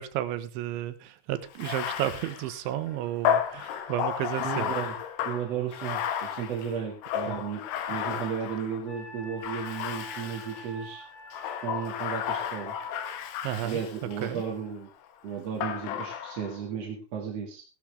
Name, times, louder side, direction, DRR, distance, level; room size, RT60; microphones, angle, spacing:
voice 1, 0.0-4.7 7.3-7.4 8.1-8.2 13.4-13.8 14.2-14.4, right 12 dB, 85° right, 12 dB, 3.4 m, -32 dB
Bathtub (filling or washing), 1.5-8.9 9.4-10.7 11.3-14.5 15.6-16.6, left 9 dB, 80° left, 3.7 m, -33 dB
voice 2, 4.4-4.9 5.2-7.6 7.9-11.0 11.6-12.8 13.6-14.9 15.2-17.6, right 7 dB, 45° right, -1 dB, 2.4 m, -34 dB
Wind instrument woodwind instrument, 8.9-13.1, equal, 65° left, 5.1 m, -46 dB
16.5 x 12.5 x 3.4 m, 0.34 s
omnidirectional pair, 5.3 m